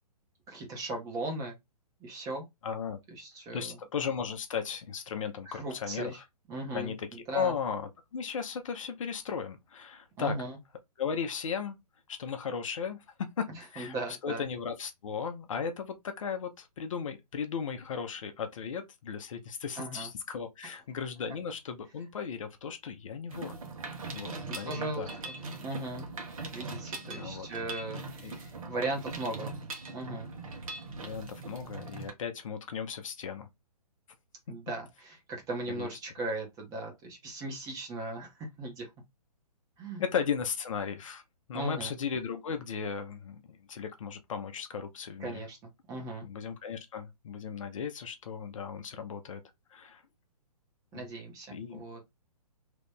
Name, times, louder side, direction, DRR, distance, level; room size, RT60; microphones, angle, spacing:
voice 1, 0.5-1.6 2.0-2.5 3.1-3.8 5.5-6.2 6.5-7.5 10.2-10.6 13.5-14.4 19.8-20.1 24.5-25.4 25.6-26.1 26.5-29.5 29.9-30.3 34.5-38.3 38.6-38.9 39.8-40.0 41.5-41.9 45.2-45.6 45.9-46.3 50.9-52.0, right 2 dB, 15° right, 1.0 m, -38 dB
voice 2, 2.6-3.0 3.5-6.2 6.7-10.4 11.0-11.8 12.1-13.0 13.4-13.5 13.7-13.9 14.2-23.5 24.1-25.1 27.0-27.5 28.2-28.3 31.0-33.5 35.7-35.9 40.0-41.2 41.5-45.4 46.2-49.4 49.7-50.0 50.9-51.1 51.5-51.8, left 6 dB, 55° left, 0.7 m, -36 dB
Mechanisms, 23.3-32.1, right 3 dB, 55° right, 1.1 m, -41 dB
3.0 x 2.5 x 3.6 m
figure-of-eight pair, 130°, 20 cm